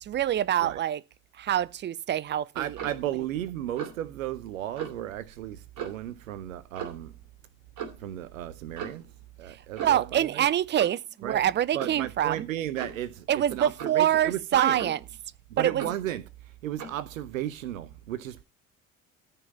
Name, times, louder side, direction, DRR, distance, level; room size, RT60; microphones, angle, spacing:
voice 1, 0.0-1.0 1.4-2.8 9.5-12.5 13.3-15.0 15.6-15.9, right 11 dB, 25° right, 0.5 m, -26 dB
voice 2, 2.5-7.1 8.0-9.0 9.4-10.5 11.2-11.4 11.7-14.9 15.5-16.2 16.6-18.4, right 12 dB, 70° right, 0.8 m, -34 dB
Clock, 2.7-3.0 3.8-4.1 4.8-5.0 5.8-6.1 6.8-7.1 7.8-8.0 8.8-9.1 9.8-10.1 10.8-11.1 11.8-12.0 12.8-13.1 13.8-14.0 14.8-15.2 15.8-16.1 16.8-17.0, right 7 dB, 45° right, 2.8 m, -39 dB
14.0 x 5.4 x 5.5 m
figure-of-eight pair, 55°, 41 cm